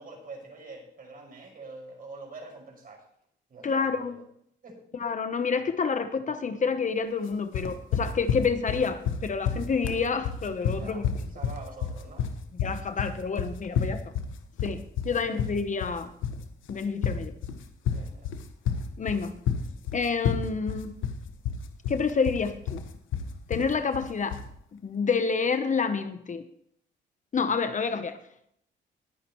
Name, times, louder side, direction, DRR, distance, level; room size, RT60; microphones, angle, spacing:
voice 1, 0.0-3.0 3.5-4.2 4.6-4.8 10.7-12.3 13.0-13.2 15.1-15.4 17.9-18.3 23.5-23.9, right 3 dB, 45° right, 1 dB, 5.8 m, -46 dB
voice 2, 3.6-4.2 5.0-11.0 12.6-14.0 14.6-16.1 16.7-17.3 19.0-19.4 19.9-21.0 21.9-22.8 23.5-24.4 24.7-26.4 27.3-28.2, left 5 dB, 40° left, 10 dB, 1.0 m, -28 dB
sound 1, 7.5-24.5, left 7 dB, 80° left, 1.3 m, -30 dB
20.5 x 9.7 x 3.1 m, 0.69 s
cardioid pair, 90°, 20 cm